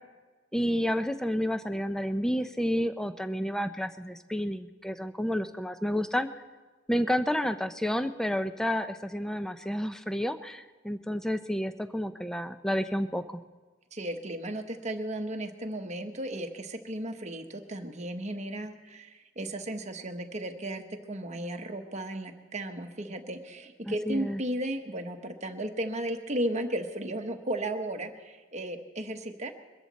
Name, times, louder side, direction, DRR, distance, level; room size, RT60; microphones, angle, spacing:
voice 1, 0.5-6.3 6.9-13.2 23.9-24.4, equal, 5° left, 10 dB, 0.5 m, -30 dB
voice 2, 13.9-29.5, right 1 dB, 35° right, 5 dB, 1.1 m, -35 dB
22.5 x 13.5 x 4.1 m, 1.3 s
head